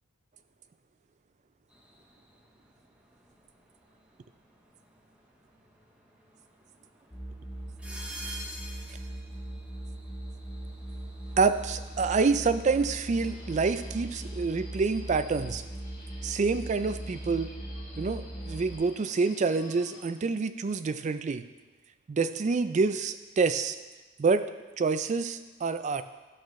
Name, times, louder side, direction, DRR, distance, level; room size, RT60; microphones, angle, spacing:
sound 1, 1.7-15.7, equal, 5° right, 0.8 m, -50 dB
sound 2, 7.1-18.8, right 1 dB, 15° left, 1.7 m, -40 dB
voice 1, 11.4-15.6 16.2-17.5 18.0-21.4 22.1-23.8 24.2-24.4 24.8-26.0, right 4 dB, 35° right, 11 dB, 0.3 m, -27 dB
Subway metro underground, 13.1-20.0, left 2 dB, 45° left, 1.5 m, -51 dB
11.5 x 6.3 x 3.2 m, 1.2 s
head